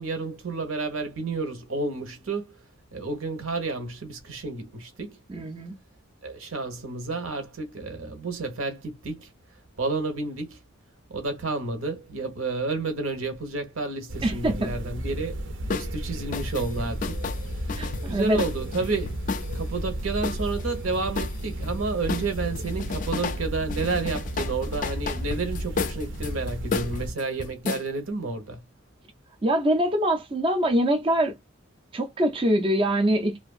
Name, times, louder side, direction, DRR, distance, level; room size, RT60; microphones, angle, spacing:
voice 1, 0.0-2.5 2.9-5.2 6.2-9.3 9.8-10.6 11.1-17.2 17.7-19.2 19.5-28.6, right 3 dB, 85° right, 1.1 m, -31 dB
voice 2, 5.3-5.8 14.2-14.7 17.8-18.4 29.4-31.4 31.9-33.4, right 1 dB, 25° right, 0.4 m, -24 dB
sound 1, 14.1-27.1, equal, 60° right, 0.7 m, -33 dB
sound 2, 15.7-15.9 16.3-19.7 20.2-21.8 22.1-23.4 23.7-27.9, left 5 dB, 40° left, 0.4 m, -32 dB
2.9 x 2.5 x 2.3 m
head